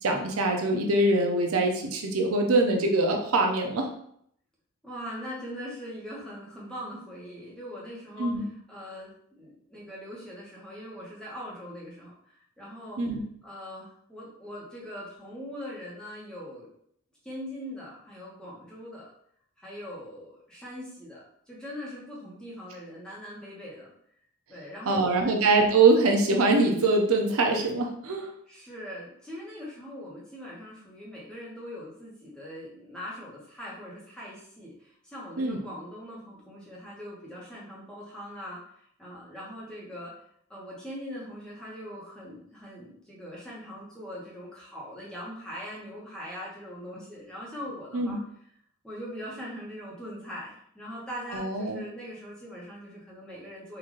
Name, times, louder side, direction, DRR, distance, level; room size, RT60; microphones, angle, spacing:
voice 1, 0.0-3.9 8.2-8.5 13.0-13.2 24.9-28.3 35.4-35.6 47.9-48.2 51.3-51.8, right 3 dB, 80° right, 2 dB, 0.6 m, -23 dB
voice 2, 4.8-13.0 13.4-16.7 17.2-19.1 19.6-23.9 24.5-25.5 28.5-38.6 39.0-40.1 40.5-48.2 48.8-53.8, equal, 5° left, -6 dB, 0.9 m, -41 dB
3.9 x 2.5 x 3.1 m, 0.68 s
head